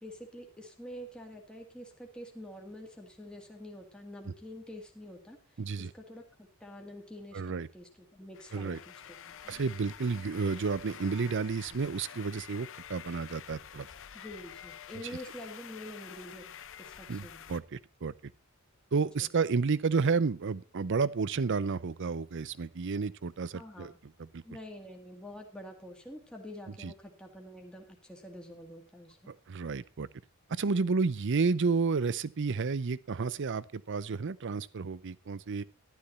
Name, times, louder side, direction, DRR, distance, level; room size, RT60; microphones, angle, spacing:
voice 1, 0.0-6.2 6.6-9.6 14.1-16.5 16.8-17.4 19.2-19.3 23.5-23.9 24.4-29.3 30.8-30.9, equal, 5° left, 1.8 m, -47 dB
voice 2, 5.6-5.9 7.3-7.7 8.5-8.8 9.5-13.9 17.1-18.1 18.9-23.9 24.3-24.4 26.8-26.9 29.3-30.1 30.5-35.6, right 4 dB, 55° right, 0.6 m, -31 dB
sound 1, 8.3-17.6, left 9 dB, 65° left, 0.8 m, -48 dB
12.0 x 12.0 x 4.2 m
head